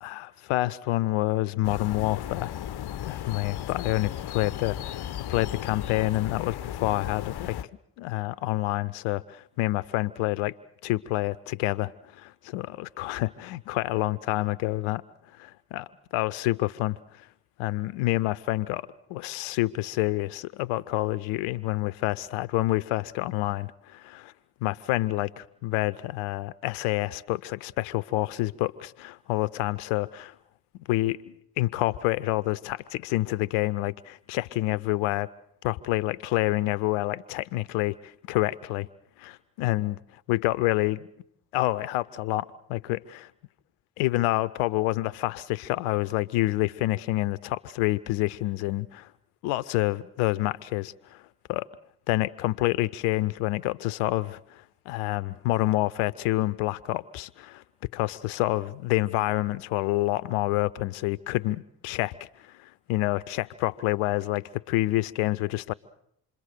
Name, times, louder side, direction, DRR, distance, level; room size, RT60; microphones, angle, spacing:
voice 1, 0.0-2.5 3.0-7.6 8.0-10.5 10.8-15.0 15.4-17.3 17.6-24.3 24.6-30.3 30.9-35.3 35.6-38.9 39.2-40.0 40.3-41.0 41.5-43.3 44.0-49.1 49.4-51.2 51.5-51.7 52.1-57.6 57.9-65.7, left 18 dB, 80° left, 0.9 m, -28 dB
sound 1, 1.6-7.6, left 11 dB, 55° left, 0.9 m, -35 dB
27.5 x 22.0 x 6.8 m
hypercardioid pair, 40°, 48 cm